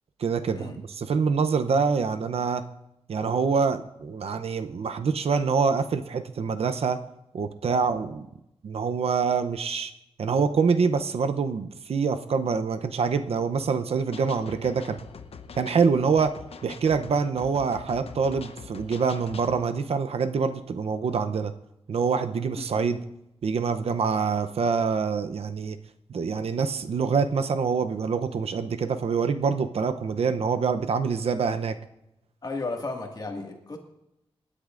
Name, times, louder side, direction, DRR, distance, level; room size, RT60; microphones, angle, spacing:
voice 1, 0.2-2.6 3.1-7.0 7.3-8.3 8.6-9.9 10.2-15.0 15.6-16.3 16.6-21.5 21.9-23.0 23.4-25.8 26.1-31.8, right 5 dB, 75° right, 9 dB, 0.7 m, -25 dB
sound 1, 14.1-19.6, left 5 dB, 75° left, 0.8 m, -44 dB
voice 2, 32.4-33.8, left 3 dB, 40° left, 2 dB, 1.9 m, -34 dB
27.0 x 9.9 x 2.5 m, 0.87 s
wide cardioid pair, 135°, 10 cm